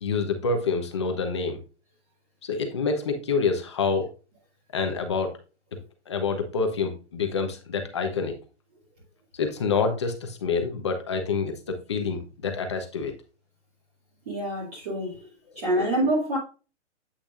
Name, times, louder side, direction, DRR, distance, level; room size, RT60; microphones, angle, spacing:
voice 1, 0.0-1.6 2.4-4.1 4.7-5.3 6.1-8.3 9.4-13.1, left 4 dB, 25° left, 0.8 m, -27 dB
voice 2, 14.3-15.3 15.5-16.4, right 1 dB, 30° right, 2.5 m, -26 dB
8.3 x 5.8 x 2.4 m
hypercardioid pair, 175°, 36 cm